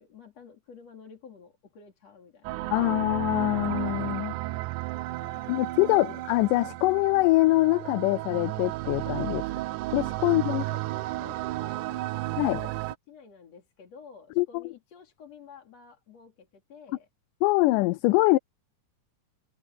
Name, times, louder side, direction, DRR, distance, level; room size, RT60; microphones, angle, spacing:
voice 1, 0.0-3.0 5.2-6.2 10.2-17.1, left 6 dB, 55° left, 3.8 m, -51 dB
sound 1, 2.4-12.9, right 18 dB, 80° right, 2.0 m, -33 dB
voice 2, 2.7-4.3 5.5-9.4 9.9-10.6 12.4-12.6 14.4-14.6 17.4-18.4, left 21 dB, 85° left, 2.1 m, -24 dB
omnidirectional pair, 3.7 m